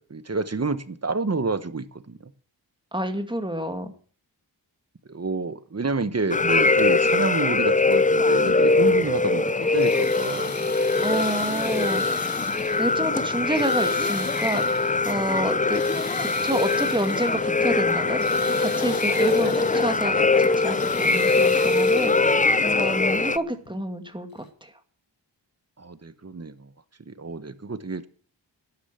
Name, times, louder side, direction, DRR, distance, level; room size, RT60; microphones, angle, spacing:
voice 1, 0.0-2.3 5.1-10.5 19.2-19.6 23.2-23.4 25.8-26.7 27.1-28.1, right 3 dB, 35° right, 1.3 m, -29 dB
voice 2, 2.9-3.9 11.0-12.0 12.8-15.8 16.2-24.7, right 1 dB, 10° right, 2.1 m, -29 dB
sound 1, 6.3-23.4, left 3 dB, 20° left, 0.6 m, -22 dB
sound 2, 9.6-13.0 13.4-15.1 15.5-17.5 17.9-20.0 20.4-22.6 23.7-23.8 24.4-24.5, left 4 dB, 50° left, 1.8 m, -39 dB
sound 3, 17.0-20.8, left 5 dB, 70° left, 2.0 m, -38 dB
12.5 x 10.5 x 7.5 m
wide cardioid pair, 80°, 44 cm